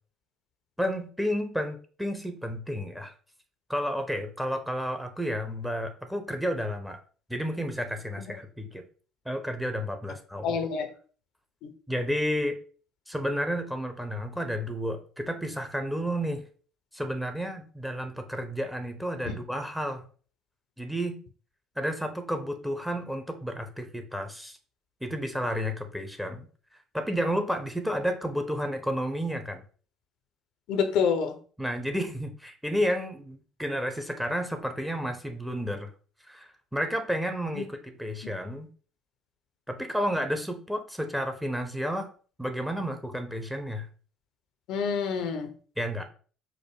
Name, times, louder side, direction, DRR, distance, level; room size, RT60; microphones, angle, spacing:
voice 1, 0.8-3.1 3.7-7.0 7.3-8.8 9.2-10.6 11.9-12.6 13.1-16.4 16.9-20.1 20.8-21.2 21.8-24.6 25.0-26.5 26.9-29.6 31.6-35.9 36.2-38.7 39.7-42.1 42.4-43.9 45.8-46.1, equal, ahead, 6 dB, 0.8 m, -31 dB
voice 2, 10.4-10.9 11.6-11.7 19.3-19.4 30.7-31.4 37.6-37.7 44.7-45.5, left 6 dB, 60° left, 7 dB, 0.6 m, -27 dB
4.9 x 2.1 x 4.7 m, 0.40 s
figure-of-eight pair, 55°, 0 cm